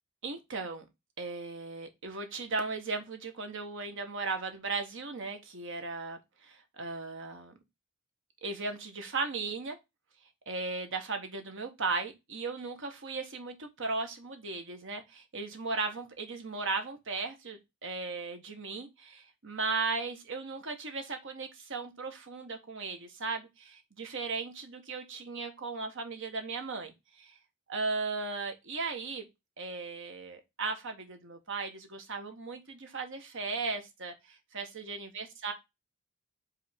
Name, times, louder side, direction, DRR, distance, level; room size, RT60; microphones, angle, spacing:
voice 1, 0.2-0.8 1.2-7.5 8.4-9.8 10.5-27.4 27.7-29.2 29.6-35.5, right 4 dB, 65° right, 1.4 m, -37 dB
5.1 x 3.7 x 5.0 m
head